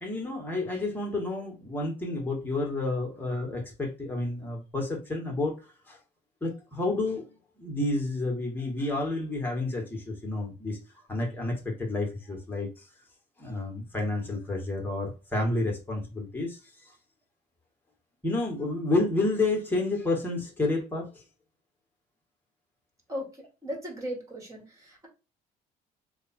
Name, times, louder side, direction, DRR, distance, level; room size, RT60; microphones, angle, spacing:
voice 1, 0.0-5.6 5.9-6.0 6.4-7.3 7.6-10.8 11.1-12.7 13.4-16.6 18.2-21.2, left 2 dB, 10° left, 1.4 m, -30 dB
voice 2, 23.6-25.1, equal, 20° right, 1.6 m, -36 dB
3.3 x 2.3 x 4.2 m
cardioid pair, 110°, 17 cm